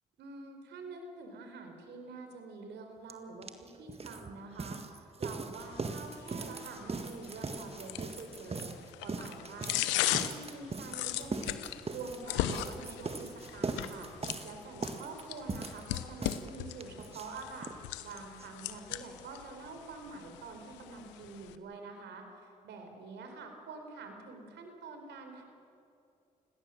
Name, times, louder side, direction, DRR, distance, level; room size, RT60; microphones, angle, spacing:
voice 1, 0.2-17.7 18.0-25.4, right 4 dB, 75° right, 5 dB, 4.2 m, -46 dB
sound 1, 3.1-3.2 3.4-17.8 18.1-18.2 18.4-18.5 18.8-18.9, right 3 dB, 35° right, 1.8 m, -40 dB
sound 2, 5.6-21.6, left 14 dB, 85° left, 0.9 m, -39 dB
30.0 x 17.5 x 7.7 m, 2.6 s
hypercardioid pair, 50°, 18 cm